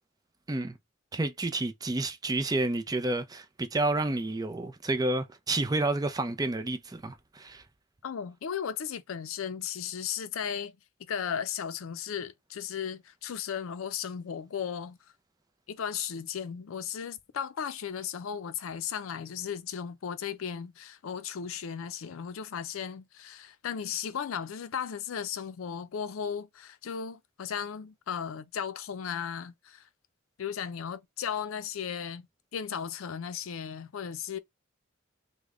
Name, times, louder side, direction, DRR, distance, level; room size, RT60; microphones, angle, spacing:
voice 1, 1.1-7.6, right 2 dB, 20° right, 0.4 m, -30 dB
voice 2, 8.0-10.8 11.1-15.0 15.7-29.9 30.4-32.3 32.5-34.4, left 8 dB, 85° left, 0.4 m, -36 dB
3.3 x 2.1 x 3.6 m
head